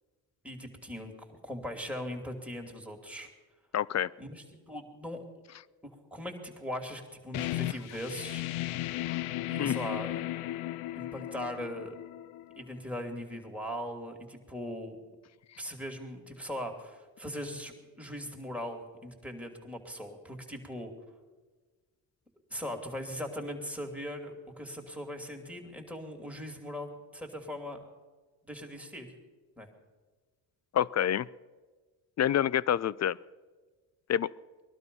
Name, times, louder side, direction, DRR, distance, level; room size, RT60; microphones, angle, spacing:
voice 1, 0.4-3.3 4.2-5.2 5.8-8.5 9.5-10.2 10.9-12.0 12.6-15.0 15.6-20.9 22.5-27.8 28.4-29.1 29.6-29.7, equal, 5° right, 1 dB, 2.7 m, -40 dB
voice 2, 3.7-4.1 9.1-9.2 9.6-9.8 30.7-31.3 32.2-33.2 34.1-34.3, left 10 dB, 35° left, 21 dB, 0.4 m, -27 dB
sound 1, 7.3-12.8, left 16 dB, 80° left, 0.6 m, -35 dB
20.0 x 12.0 x 5.4 m, 1.4 s
supercardioid pair, 55°, 48 cm